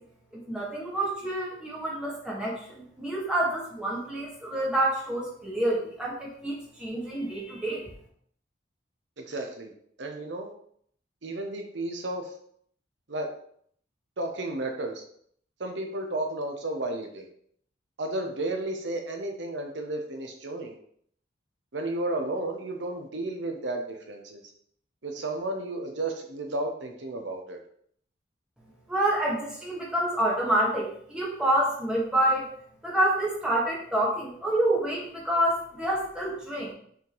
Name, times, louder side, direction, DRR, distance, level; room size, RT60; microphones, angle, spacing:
voice 1, 0.3-7.8 28.9-32.5 32.8-36.7, right 1 dB, 5° right, -5 dB, 1.7 m, -28 dB
voice 2, 9.2-9.7 10.0-10.5 11.2-12.3 13.1-13.3 14.2-15.0 15.6-17.3 18.0-20.8 21.7-24.4 25.0-27.6, right 2 dB, 75° right, 3 dB, 0.9 m, -33 dB
5.9 x 3.6 x 4.6 m, 0.63 s
head